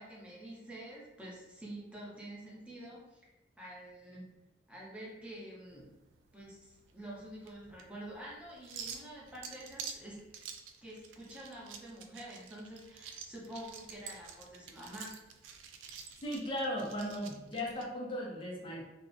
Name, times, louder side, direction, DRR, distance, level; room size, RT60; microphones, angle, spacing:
voice 1, 0.0-3.2 3.6-4.3 4.7-5.9 6.3-10.2 10.8-15.1, right 1 dB, 5° right, -5 dB, 0.6 m, -47 dB
sound 1, 5.7-17.9, right 6 dB, 80° right, 0.3 m, -49 dB
voice 2, 16.2-18.8, equal, 30° left, -3 dB, 0.4 m, -37 dB
2.5 x 2.0 x 2.5 m, 1.0 s
head